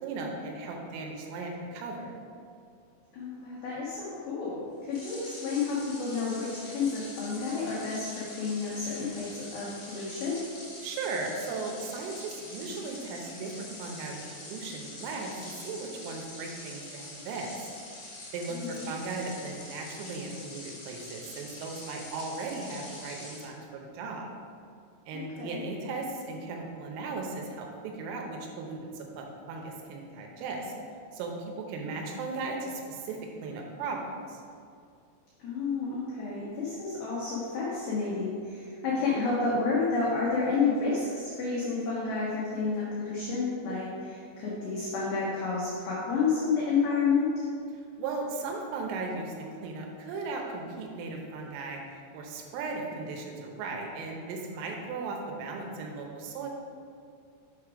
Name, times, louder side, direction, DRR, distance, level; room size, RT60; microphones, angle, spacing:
voice 1, 0.0-2.1 10.8-17.7 18.0-24.3 25.1-30.7 31.1-34.4 47.7-56.5, right 3 dB, 85° right, 1 dB, 3.3 m, -37 dB
voice 2, 3.1-10.4 18.6-18.9 25.1-25.7 35.4-47.5, left 4 dB, 85° left, -6 dB, 2.1 m, -30 dB
sound 1, 4.9-23.5, left 2 dB, 60° left, 1.7 m, -45 dB
7.3 x 4.8 x 4.8 m, 2.3 s
omnidirectional pair, 5.9 m